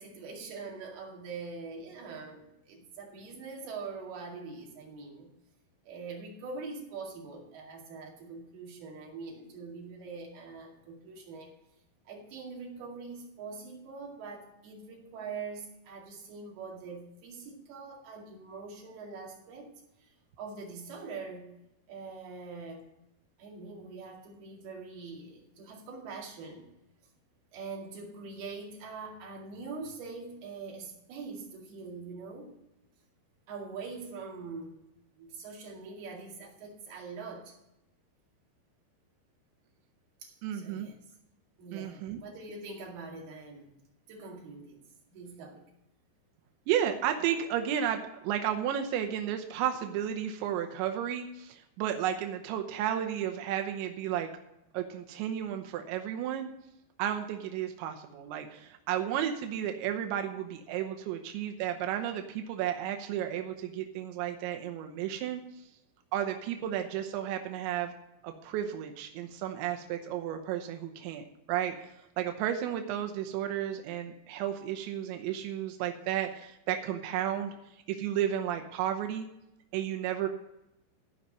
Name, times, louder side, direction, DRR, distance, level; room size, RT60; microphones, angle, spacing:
voice 1, 0.0-5.3 5.8-11.5 12.1-19.7 20.0-21.5 21.9-22.9 23.4-26.7 27.5-32.5 33.5-34.9 35.1-37.6 40.2-41.0 41.6-43.7 44.1-44.8 45.1-45.7, right 4 dB, 65° right, -1 dB, 4.1 m, -43 dB
voice 2, 40.4-40.9 41.7-42.2 46.7-54.3 54.7-56.5 57.0-65.4 66.1-67.9 68.2-79.3 79.7-80.3, right 10 dB, 90° right, 5 dB, 3.2 m, -33 dB
14.5 x 5.5 x 6.4 m, 0.88 s
omnidirectional pair, 5.1 m